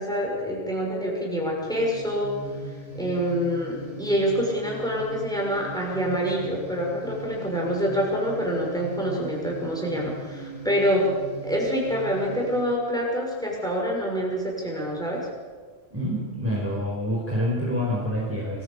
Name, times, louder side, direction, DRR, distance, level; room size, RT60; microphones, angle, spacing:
voice 1, 0.0-2.4 2.9-11.1 11.4-15.3, equal, 5° left, -2 dB, 6.3 m, -26 dB
sound 1, 1.7-12.6, right 2 dB, 70° left, 5.5 m, -40 dB
voice 2, 15.9-18.6, equal, 10° right, -4 dB, 4.8 m, -27 dB
24.5 x 16.0 x 8.1 m, 1.5 s
omnidirectional pair, 1.1 m